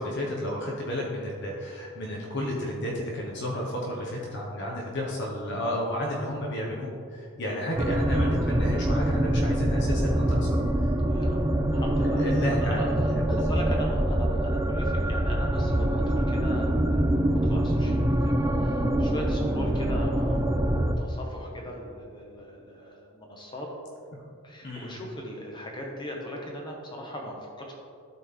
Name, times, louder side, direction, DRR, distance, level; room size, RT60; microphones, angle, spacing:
voice 1, 0.0-10.9 12.2-12.8 13.3-13.6 24.6-25.0, equal, 50° left, -2 dB, 1.0 m, -32 dB
sound 1, 7.8-21.0, right 1 dB, 15° right, 0.3 m, -25 dB
voice 2, 11.1-23.7 24.4-27.7, equal, 20° left, -1 dB, 1.0 m, -39 dB
12.0 x 4.2 x 3.6 m, 2.3 s
head